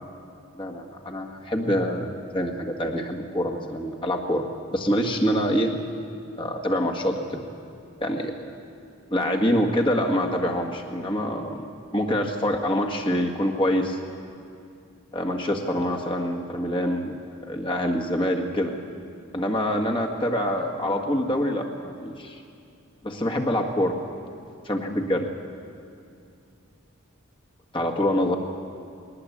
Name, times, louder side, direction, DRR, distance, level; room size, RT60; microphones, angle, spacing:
voice 1, 0.5-4.4 4.7-5.8 6.4-7.4 8.0-8.6 9.1-14.0 15.1-17.2 17.5-18.7 19.3-22.4 23.0-24.0 24.7-25.3 27.7-28.4, equal, 25° left, 2 dB, 1.8 m, -25 dB
21.0 x 19.5 x 8.6 m, 2.6 s
head